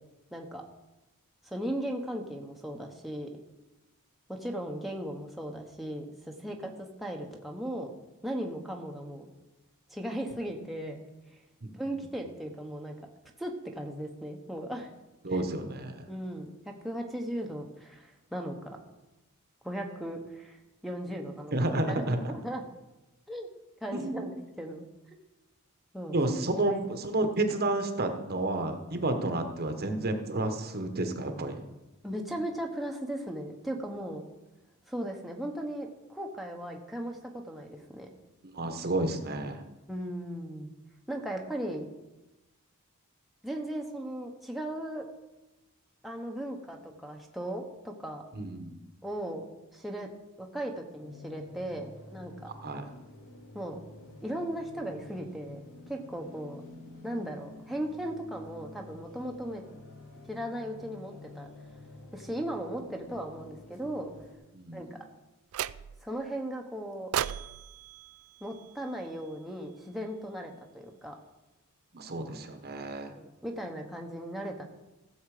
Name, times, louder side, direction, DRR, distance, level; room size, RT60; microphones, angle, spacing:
voice 1, 0.3-0.6 1.4-3.3 4.3-7.9 8.2-9.3 9.9-11.0 11.7-12.9 13.4-14.9 15.3-15.4 16.1-18.8 19.6-21.5 21.9-22.6 23.3-23.5 23.8-24.8 25.9-26.1 26.6-26.8 32.0-34.2 34.9-37.2 37.4-38.1 39.9-40.7 41.1-41.9 43.4-45.0 46.0-48.2 49.0-49.4 49.7-50.1 50.4-52.3 53.5-53.8 54.2-55.6 55.9-56.6 57.0-59.6 60.3-61.5 62.1-64.1 64.7-65.0 66.0-67.1 68.4-71.2 73.2-74.6, right 1 dB, ahead, 0 dB, 1.1 m, -37 dB
voice 2, 15.2-16.1 21.5-22.3 23.9-24.3 26.1-31.6 38.5-39.6 48.3-48.8 52.6-52.8 64.5-65.0 71.9-73.1, right 2 dB, 45° right, 6 dB, 1.2 m, -31 dB
sound 1, 51.0-64.4, left 2 dB, 60° left, 2.1 m, -49 dB
sound 2, 65.5-66.2 67.1-69.4, right 10 dB, 75° right, 0.4 m, -37 dB
15.5 x 7.2 x 4.9 m, 1.0 s
head